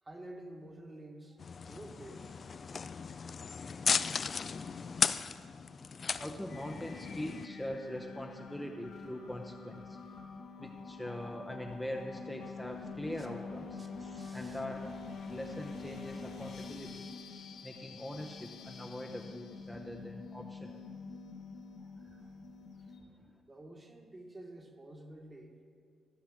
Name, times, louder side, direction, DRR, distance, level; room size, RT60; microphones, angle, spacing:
voice 1, 0.0-2.4 13.2-13.3 13.8-14.7 21.8-22.3 23.4-25.6, right 1 dB, 20° right, 3 dB, 1.4 m, -50 dB
sound 1, 1.4-7.5, left 5 dB, 40° left, 0.3 m, -36 dB
voice 2, 6.2-10.0 10.6-13.8 14.3-14.8 15.3-17.0 17.6-20.8 23.2-23.3, left 1 dB, 5° left, 1 dB, 0.7 m, -42 dB
sound 2, 6.5-23.0, left 4 dB, 70° left, 1.5 m, -46 dB
14.5 x 5.7 x 6.3 m, 2.2 s
cardioid pair, 90°, 0 cm